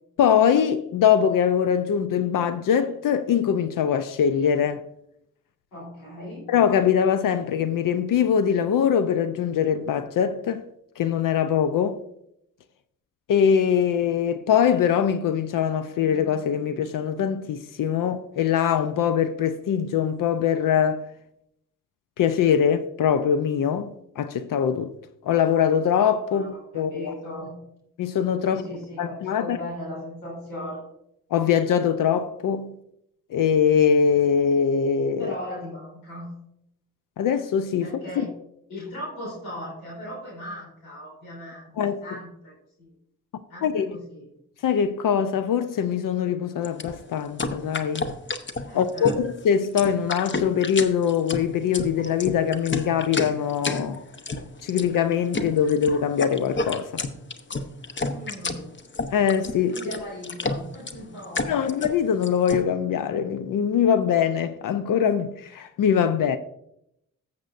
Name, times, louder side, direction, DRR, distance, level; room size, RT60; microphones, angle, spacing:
voice 1, 0.2-4.8 6.5-10.6 11.0-12.0 13.3-21.1 22.2-24.9 25.2-27.1 28.0-28.6 29.0-29.6 31.3-32.7 33.3-35.3 37.2-37.9 41.8-42.0 43.6-43.9 44.6-48.1 48.7-54.0 54.6-57.0 59.1-59.8 61.4-66.4, left 8 dB, 65° left, 0.6 m, -22 dB
voice 2, 5.7-6.5 26.3-27.5 28.5-30.8 35.2-36.3 37.8-38.3 38.7-42.5 42.8-42.9 43.5-44.3 48.7-49.1 58.1-58.8 59.6-61.7, left 1 dB, 85° left, 3.6 m, -38 dB
sound 1, 46.6-62.6, left 3 dB, 30° left, 0.9 m, -31 dB
14.5 x 6.9 x 2.6 m
hypercardioid pair, 40°, 36 cm